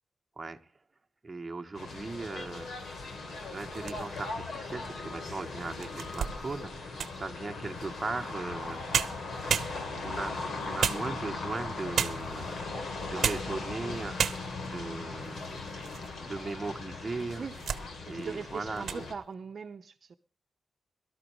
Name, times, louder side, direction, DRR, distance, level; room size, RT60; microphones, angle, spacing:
voice 1, 1.2-8.9 9.3-9.4 9.9-12.6 13.1-15.7 16.2-17.5 18.1-19.0, right 3 dB, 25° right, 1.3 m, -38 dB
sound 1, 1.7-19.1, left 3 dB, 75° left, 3.4 m, -39 dB
sound 2, 3.6-4.4 5.0-5.1 5.6-7.3 8.6-8.7 8.9-10.1 10.8-11.5 11.9-12.4 13.0-13.6 13.8-13.9 14.2-14.7 15.3-16.1 16.4-16.5 17.2-17.9 18.2-18.5 18.8-19.0, right 7 dB, 90° right, 0.8 m, -32 dB
voice 2, 18.1-20.1, right 5 dB, 55° right, 0.8 m, -40 dB
23.0 x 13.0 x 3.1 m
wide cardioid pair, 140°, 0 cm